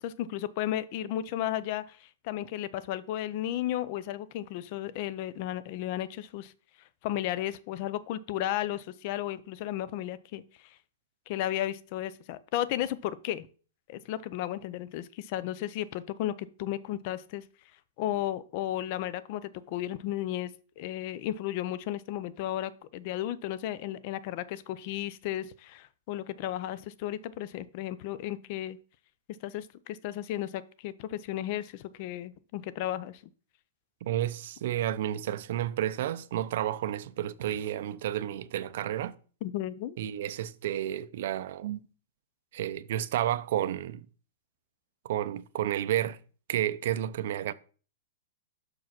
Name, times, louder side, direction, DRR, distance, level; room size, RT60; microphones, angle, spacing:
voice 1, 0.2-6.5 7.0-10.8 11.3-13.5 13.9-17.4 18.0-28.8 29.4-33.2 39.4-40.0, left 12 dB, 40° left, 0.5 m, -34 dB
voice 2, 34.0-39.1 40.0-41.8 42.5-44.0 45.0-46.2 46.5-47.5, right 12 dB, 55° right, 0.5 m, -31 dB
6.3 x 4.8 x 5.9 m
hypercardioid pair, 160°, 0 cm